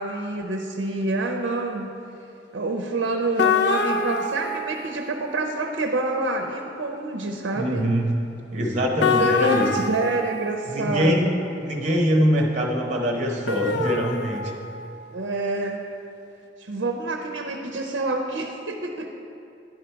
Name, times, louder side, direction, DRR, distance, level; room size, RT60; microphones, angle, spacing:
voice 1, 0.0-1.9 2.5-7.9 9.0-11.3 15.1-15.8 16.6-19.1, right 2 dB, 75° right, 3 dB, 0.6 m, -27 dB
sound 1, 3.4-5.4 9.0-11.1 13.5-15.0, left 4 dB, 60° left, 0.5 m, -26 dB
voice 2, 7.6-8.1 8.5-9.7 10.7-11.3 11.6-14.5, equal, 40° right, 1 dB, 0.9 m, -23 dB
11.0 x 5.1 x 4.5 m, 2.7 s
head